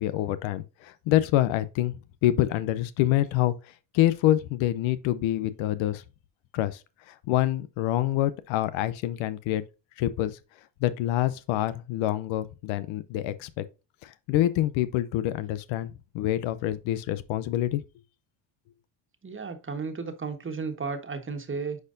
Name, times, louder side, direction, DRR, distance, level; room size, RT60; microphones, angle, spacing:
voice 1, 0.0-2.0 2.2-6.0 6.5-6.8 7.1-9.6 10.0-10.4 10.8-13.6 14.0-17.8, left 14 dB, 85° left, 0.7 m, -26 dB
voice 2, 19.2-21.8, right 4 dB, 25° right, 1.5 m, -34 dB
9.5 x 4.4 x 2.6 m
cardioid pair, 95°, 46 cm